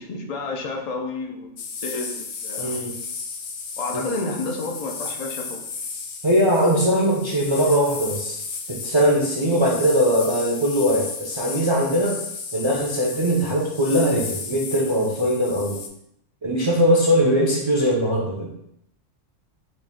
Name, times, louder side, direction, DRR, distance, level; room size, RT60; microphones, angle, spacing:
voice 1, 0.0-2.8 3.8-5.6, left 3 dB, 80° left, 1 dB, 0.3 m, -30 dB
sound 1, 1.6-15.9, left 5 dB, 60° left, 0.7 m, -34 dB
voice 2, 2.6-2.9 6.2-8.4 8.7-12.2 12.5-15.8 16.4-18.5, equal, 40° right, -4 dB, 0.4 m, -20 dB
4.1 x 2.5 x 3.5 m, 0.77 s
omnidirectional pair, 1.3 m